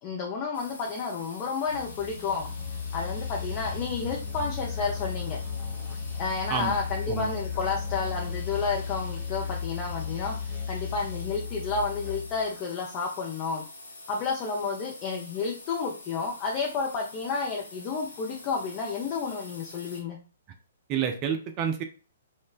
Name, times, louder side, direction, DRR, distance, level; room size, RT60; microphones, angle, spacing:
voice 1, 0.0-2.5 2.9-5.4 6.1-13.6 14.1-20.2, left 4 dB, 30° left, -2 dB, 0.5 m, -31 dB
sound 1, 0.5-20.0, left 2 dB, 75° left, 0.6 m, -47 dB
sound 2, 1.7-11.2, left 1 dB, 55° left, 1.1 m, -43 dB
Musical instrument, 2.4-12.5, left 7 dB, 15° right, 0.7 m, -35 dB
voice 2, 20.9-21.8, right 8 dB, 30° right, 6 dB, 0.3 m, -29 dB
3.0 x 2.1 x 2.3 m, 0.35 s
figure-of-eight pair, 120°, 0 cm